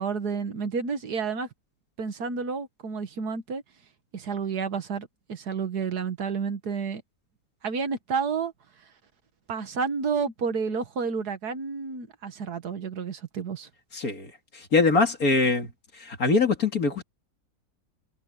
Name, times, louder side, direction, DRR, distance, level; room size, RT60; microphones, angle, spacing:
voice 1, 0.0-1.5 2.0-3.6 4.1-7.0 7.6-8.5 9.5-13.7, right 5 dB, 75° right, 2.0 m, -30 dB
voice 2, 13.9-15.7 16.0-17.0, left 3 dB, 60° left, 3.1 m, -23 dB
omnidirectional pair, 1.7 m